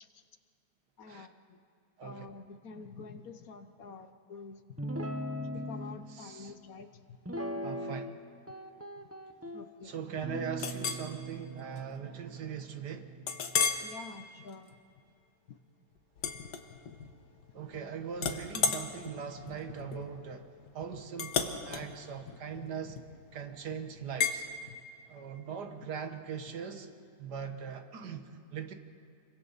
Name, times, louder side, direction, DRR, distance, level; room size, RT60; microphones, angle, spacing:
voice 1, 1.0-1.6 2.0-4.8 5.3-7.0 9.5-10.1 13.8-14.7 15.5-15.6 16.7-16.8 24.7-24.8, left 4 dB, 60° left, 9 dB, 1.3 m, -48 dB
Guitar, 4.8-6.0 7.2-8.2 8.5-9.6 10.2-13.7, equal, 10° right, 0.7 m, -40 dB
voice 2, 6.1-6.5 7.6-8.1 9.8-13.1 17.5-20.5 20.7-23.0 23.3-24.5 25.1-26.9 27.2-28.7, right 7 dB, 75° right, 7 dB, 1.9 m, -40 dB
Chink clink, 10.6-11.1 11.6-11.8 12.2-12.3 13.3-13.9 14.4-14.7 16.2-17.1 17.4-17.8 18.2-23.3 24.2-24.4, left 6 dB, 80° left, 1.8 m, -34 dB
29.5 x 23.0 x 4.2 m, 2.6 s
omnidirectional pair, 1.8 m